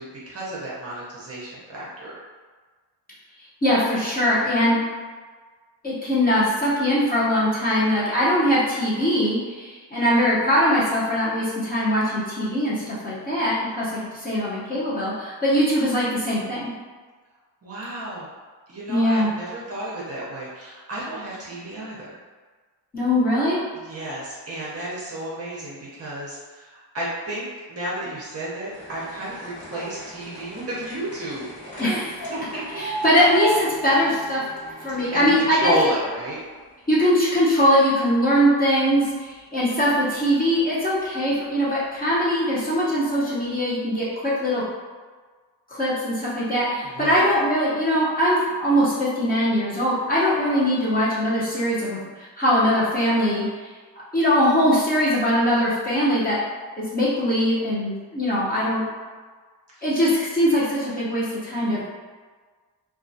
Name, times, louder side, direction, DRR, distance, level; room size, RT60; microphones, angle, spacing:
voice 1, 0.0-2.1 17.6-18.3 18.7-22.2 23.8-31.5 32.3-32.6 35.1-36.4 46.8-47.3 59.7-60.0, right 1 dB, 35° right, -7 dB, 0.6 m, -31 dB
voice 2, 3.6-4.8 5.8-16.7 18.9-19.3 22.9-23.6 31.8-32.2 32.8-34.4 34.8-35.7 36.9-44.6 45.7-53.5 54.1-56.4 56.8-58.8 59.8-61.8, equal, 20° left, -9 dB, 0.7 m, -21 dB
sound 1, 28.7-37.0 37.3-38.2 38.9-39.0 39.3-39.4 39.6-39.7 40.6-40.8 41.3-41.4 42.1-42.2 42.7-42.8, right 2 dB, 60° left, 1.3 m, -36 dB
2.3 x 2.2 x 2.6 m, 1.4 s
cardioid pair, 115°, 45 cm